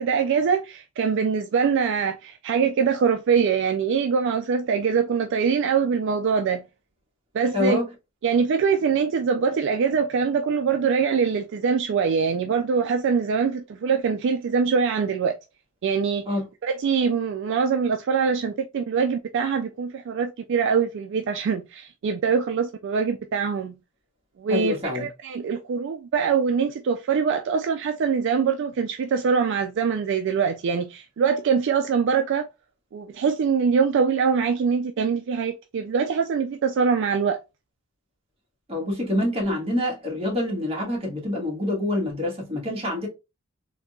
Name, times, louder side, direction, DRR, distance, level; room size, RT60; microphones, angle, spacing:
voice 1, 0.0-6.6 7.3-7.8 8.2-15.4 15.8-16.2 16.6-23.7 24.4-32.5 32.9-37.4, right 6 dB, 60° right, 0.3 m, -23 dB
voice 2, 7.5-7.8 16.3-16.4 24.5-25.1 38.7-43.1, left 1 dB, 30° right, 1.3 m, -26 dB
3.7 x 2.7 x 2.3 m
head